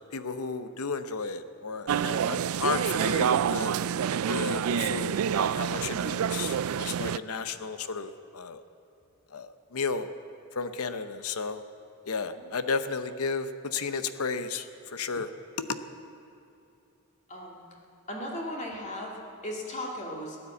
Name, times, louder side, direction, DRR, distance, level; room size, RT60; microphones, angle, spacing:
voice 1, 0.1-3.8 4.3-8.6 9.3-10.1 10.6-11.6 12.1-15.3 15.6-15.8, left 4 dB, 85° left, 11 dB, 0.8 m, -33 dB
sound 1, 1.9-7.2, right 8 dB, 75° right, 0.4 m, -27 dB
voice 2, 17.3-17.6 18.1-20.4, left 1 dB, 35° left, -2 dB, 2.2 m, -37 dB
17.0 x 9.9 x 8.3 m, 2.7 s
head